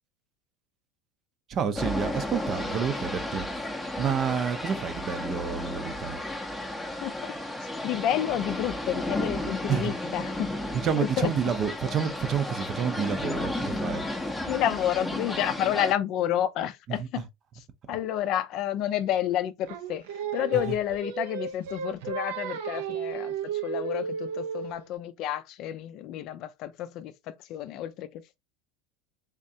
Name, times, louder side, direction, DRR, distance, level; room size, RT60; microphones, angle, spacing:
voice 1, 1.5-3.5 4.0-6.2 9.7-9.9 10.7-14.0 17.0-17.1 20.5-20.6, right 7 dB, 35° right, 0.6 m, -29 dB
sound 1, 1.8-15.9, left 1 dB, 5° left, 0.7 m, -33 dB
voice 2, 7.0-7.3 7.8-10.5 11.0-11.3 14.5-17.3 17.9-20.0 20.3-28.4, left 11 dB, 50° left, 0.4 m, -30 dB
Singing, 19.7-24.9, right 7 dB, 80° right, 0.6 m, -34 dB
3.6 x 3.2 x 2.7 m
supercardioid pair, 135°, 0 cm